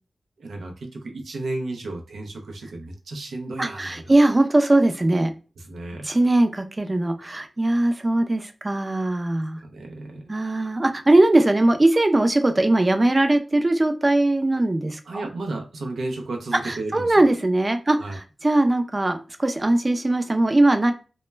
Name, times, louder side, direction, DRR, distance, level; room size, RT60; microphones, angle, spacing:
voice 1, 0.4-4.1 5.6-6.1 9.6-10.2 15.0-17.2 17.9-18.2, right 2 dB, 85° right, 3 dB, 0.5 m, -33 dB
voice 2, 3.6-5.3 6.0-9.6 10.3-15.2 16.6-20.9, right 2 dB, 35° right, 7 dB, 0.4 m, -20 dB
2.1 x 2.1 x 3.2 m, 0.33 s
cardioid pair, 45°, 0 cm